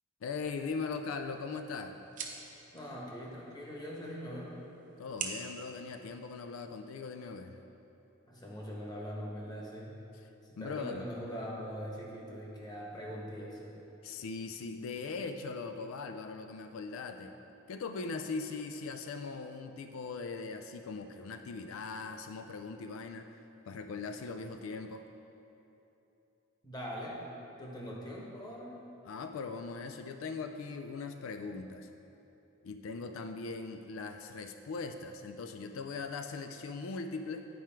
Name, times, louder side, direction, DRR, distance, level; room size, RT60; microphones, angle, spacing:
voice 1, 0.2-2.0 5.0-7.6 10.2-10.3 10.6-11.1 14.0-17.3 17.7-23.2 23.7-25.1 29.1-31.9 32.6-37.5, left 4 dB, 85° left, 7 dB, 0.4 m, -40 dB
sound 1, 0.9-6.9, right 5 dB, 40° right, 0.7 m, -47 dB
voice 2, 2.7-4.5 8.3-10.0 10.4-13.7 26.6-27.2 27.6-28.8, equal, 20° left, -3 dB, 1.1 m, -42 dB
9.2 x 4.7 x 4.4 m, 2.9 s
head